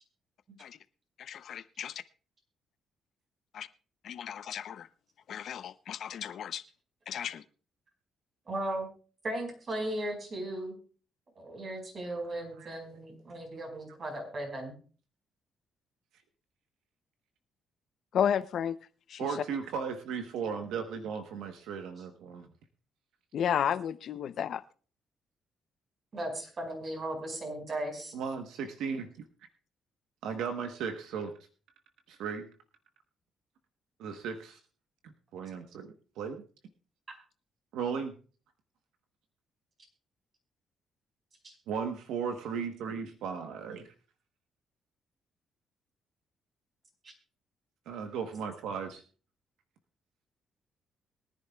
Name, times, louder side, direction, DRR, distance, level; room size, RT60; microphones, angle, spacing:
voice 1, 1.2-2.0 3.5-3.7 4.0-4.9 5.3-6.6 7.1-7.4 18.1-18.8 19.1-19.3 23.3-24.6, left 9 dB, 65° left, 14 dB, 0.6 m, -32 dB
voice 2, 8.4-8.9 9.2-10.7 11.3-14.7 26.1-28.1 41.4-41.5, right 1 dB, 45° right, 3 dB, 5.1 m, -36 dB
voice 3, 19.2-22.5 28.1-29.1 30.2-31.3 32.1-32.5 34.0-34.6 35.0-36.4 37.7-38.1 41.7-43.9 47.9-49.0, right 6 dB, 85° right, 6 dB, 1.1 m, -36 dB
22.5 x 10.5 x 2.3 m, 0.38 s
cardioid pair, 90°, 0 cm